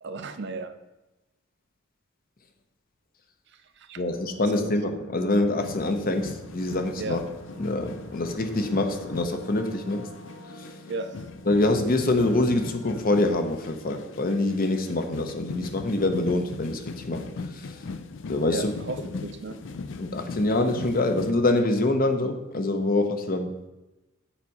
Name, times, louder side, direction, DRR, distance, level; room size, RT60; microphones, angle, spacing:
voice 1, 0.0-0.7 3.8-4.0 4.3-4.5 7.0-7.2 10.9-11.1 18.5-19.6, right 3 dB, 60° right, 9 dB, 0.6 m, -34 dB
voice 2, 4.0-7.2 7.6-10.1 10.6-10.7 11.5-17.8 18.3-18.7 20.0-23.5, left 2 dB, 45° left, 6 dB, 0.8 m, -25 dB
sound 1, 4.1-13.8, left 2 dB, 85° left, 1.4 m, -47 dB
sound 2, 5.6-21.3, left 3 dB, 65° left, 0.5 m, -40 dB
7.2 x 4.7 x 5.4 m, 1.0 s
head